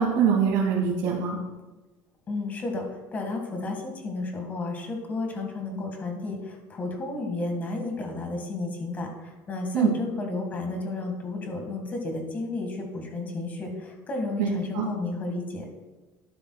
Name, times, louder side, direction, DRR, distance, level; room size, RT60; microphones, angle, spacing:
voice 1, 0.0-1.4 9.7-9.9 14.4-14.9, right 7 dB, 70° right, -3 dB, 2.2 m, -23 dB
voice 2, 2.3-15.7, left 2 dB, 25° left, 3 dB, 1.9 m, -32 dB
12.0 x 11.5 x 2.4 m, 1.2 s
cardioid pair, 170°, 7 cm